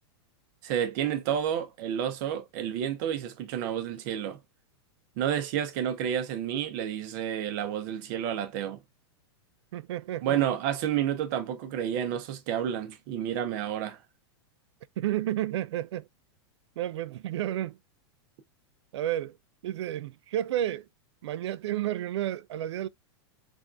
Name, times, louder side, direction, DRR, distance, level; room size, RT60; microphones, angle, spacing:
voice 1, 0.6-4.4 5.2-8.8 10.2-14.0, right 9 dB, 45° right, 0.7 m, -30 dB
voice 2, 9.7-10.4 15.0-16.1 16.8-17.8 18.9-19.4 19.6-20.9 21.2-22.9, right 12 dB, 80° right, 0.4 m, -31 dB
3.5 x 2.4 x 2.4 m
supercardioid pair, 150°, 14 cm